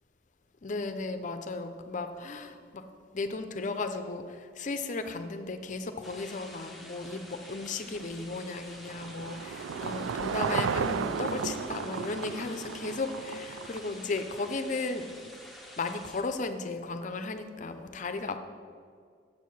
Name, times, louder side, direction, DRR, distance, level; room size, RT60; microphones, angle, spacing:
voice 1, 0.6-2.8 3.1-15.1 15.8-18.4, left 3 dB, 40° left, 8 dB, 0.5 m, -35 dB
sound 1, 6.0-16.2, left 1 dB, ahead, 0.8 m, -49 dB
Car passing by / Engine, 7.9-14.4, right 6 dB, 90° right, 0.3 m, -34 dB
7.8 x 4.7 x 7.0 m, 2.1 s
head